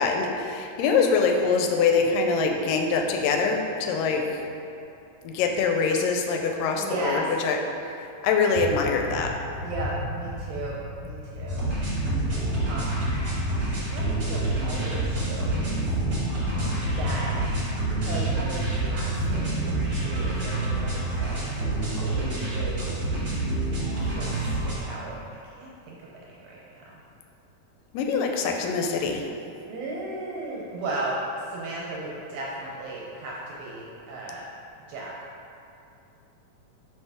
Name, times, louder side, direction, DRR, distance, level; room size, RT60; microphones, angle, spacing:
voice 1, 0.0-4.4 5.2-7.6 8.2-9.4 27.9-29.3, left 5 dB, 85° left, 3 dB, 2.1 m, -24 dB
voice 2, 6.8-7.3 9.6-11.7 12.5-13.0 13.7-15.8 17.0-17.4 18.1-19.7 20.0-22.9 24.0-25.2 25.6-26.8 29.7-31.2 31.5-34.5 34.9-35.1, right 2 dB, 75° right, -4 dB, 1.8 m, -36 dB
sound 1, 8.6-21.2, left 1 dB, 65° left, 1.4 m, -33 dB
sound 2, 11.5-24.8, right 2 dB, 45° right, 1.1 m, -28 dB
5.8 x 5.5 x 3.5 m, 2.6 s
omnidirectional pair, 3.9 m